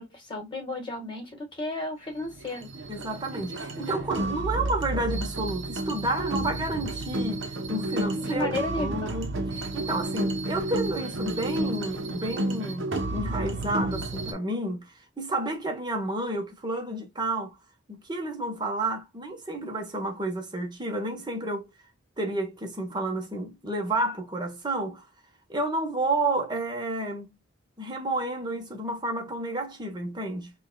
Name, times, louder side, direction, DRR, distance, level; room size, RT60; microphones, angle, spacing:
voice 1, 0.0-2.7 8.3-9.1, left 2 dB, 25° left, 1.6 m, -33 dB
sound 1, 2.2-14.3, right 2 dB, 70° right, 0.9 m, -31 dB
voice 2, 2.9-9.3 9.6-14.9 15.2-17.5 17.9-21.7 22.2-25.0 25.5-27.3 27.8-30.5, right 2 dB, 20° right, 1.0 m, -31 dB
5.5 x 2.5 x 2.2 m
head